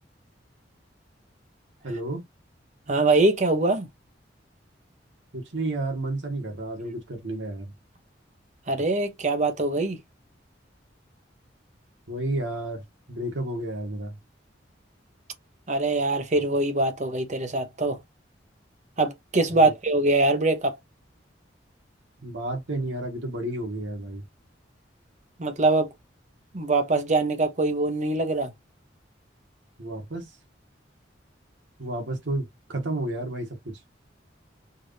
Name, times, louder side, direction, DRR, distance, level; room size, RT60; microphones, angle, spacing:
voice 1, 1.8-2.2 5.3-7.7 12.1-14.2 19.5-19.7 22.2-24.2 29.8-30.3 31.8-33.8, right 1 dB, 90° right, 1.5 m, -31 dB
voice 2, 2.9-3.9 8.7-10.0 15.7-18.0 19.0-20.8 25.4-25.9 26.5-28.5, right 2 dB, 40° right, 0.8 m, -23 dB
4.6 x 2.5 x 3.2 m
head